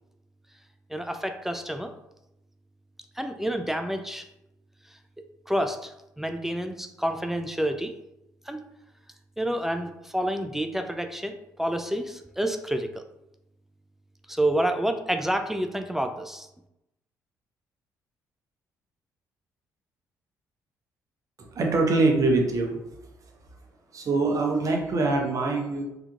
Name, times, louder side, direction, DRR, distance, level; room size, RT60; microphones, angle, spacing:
voice 1, 0.9-1.9 3.2-4.3 5.5-7.9 8.5-8.6 9.4-13.0 14.3-16.5, right 1 dB, 5° right, 7 dB, 0.3 m, -29 dB
voice 2, 21.4-22.8 23.9-25.8, right 3 dB, 40° right, 2 dB, 0.7 m, -24 dB
3.4 x 2.9 x 2.3 m, 0.87 s
figure-of-eight pair, 45°, 9 cm